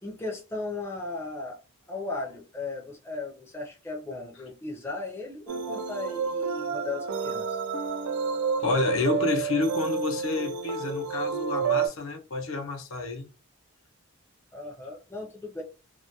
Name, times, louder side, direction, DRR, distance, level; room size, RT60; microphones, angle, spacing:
voice 1, 0.0-1.6 1.9-7.6 14.5-15.6, left 3 dB, 10° left, 0.4 m, -36 dB
sound 1, 5.5-11.9, right 6 dB, 85° right, 0.4 m, -30 dB
voice 2, 8.6-13.3, left 3 dB, 70° left, 0.5 m, -29 dB
2.3 x 2.1 x 2.7 m
head